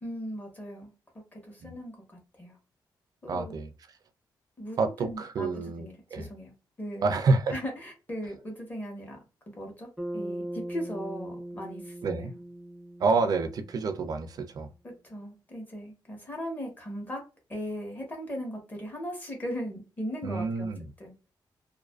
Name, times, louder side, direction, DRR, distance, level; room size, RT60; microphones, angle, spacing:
voice 1, 0.0-2.6 3.2-3.6 4.6-5.5 5.8-6.5 6.8-7.1 7.5-9.2 9.5-12.3 14.8-17.2 17.5-20.7 21.0-21.1, equal, 20° left, 0.9 m, -38 dB
voice 2, 3.3-3.7 4.8-6.3 7.0-7.6 12.0-12.3 13.0-14.7 20.2-20.9, right 4 dB, 50° right, 0.4 m, -28 dB
Bass guitar, 10.0-14.3, right 1 dB, ahead, 0.5 m, -39 dB
2.5 x 2.4 x 2.3 m
wide cardioid pair, 165°, 8 cm